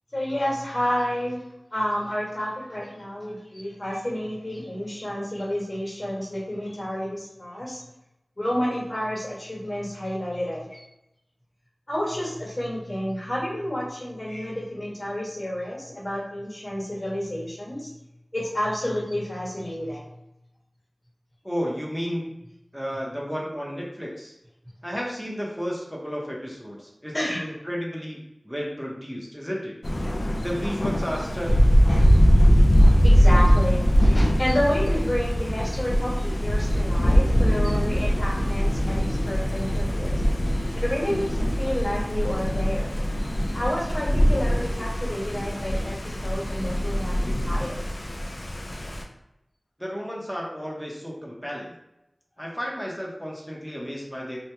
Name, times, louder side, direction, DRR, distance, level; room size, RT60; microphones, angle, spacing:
voice 1, 0.1-1.4 1.7-7.8 8.4-10.8 11.9-17.9 18.3-20.0 27.1-27.4 30.0-30.1 31.9-32.1 33.0-40.2 40.7-43.0 43.5-47.8, equal, 40° left, -5 dB, 1.3 m, -30 dB
voice 2, 21.4-22.4 22.7-24.3 24.8-29.7 30.3-31.7 49.8-51.7 52.4-54.4, equal, ahead, -4 dB, 0.7 m, -32 dB
Thunder, 29.8-49.0, equal, 60° left, 0.4 m, -21 dB
2.9 x 2.1 x 3.3 m, 0.87 s
wide cardioid pair, 60°, 0 cm